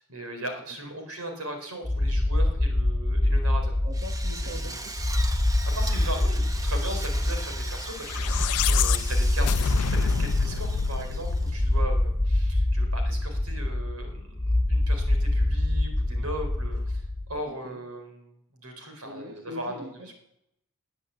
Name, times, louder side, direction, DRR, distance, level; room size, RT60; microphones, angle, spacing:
voice 1, 0.0-3.7 4.4-4.8 5.7-20.1, right 1 dB, 80° right, 5 dB, 4.3 m, -38 dB
sound 1, 1.8-17.4, left 1 dB, 15° left, 0.8 m, -25 dB
voice 2, 3.8-4.9 17.5-17.8 19.0-20.1, equal, 50° right, 2 dB, 1.9 m, -42 dB
Drill, 3.9-11.8, right 2 dB, 15° right, 1.0 m, -40 dB
sound 2, 7.9-12.3, left 7 dB, 90° left, 0.5 m, -29 dB
20.5 x 8.3 x 8.4 m, 0.78 s
head